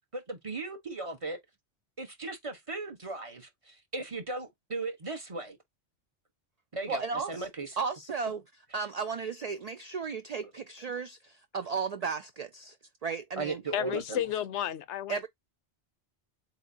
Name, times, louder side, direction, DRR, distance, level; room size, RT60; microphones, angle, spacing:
voice 1, 0.0-1.4 2.0-5.6 6.7-7.8 13.4-14.2, right 3 dB, 30° right, 1.0 m, -37 dB
voice 2, 6.9-7.5 7.8-8.4 8.7-12.8 13.0-14.0 15.1-15.3, right 5 dB, 60° right, 0.4 m, -34 dB
voice 3, 13.7-15.3, left 11 dB, 85° left, 0.9 m, -32 dB
7.5 x 2.6 x 2.7 m
omnidirectional pair, 1.2 m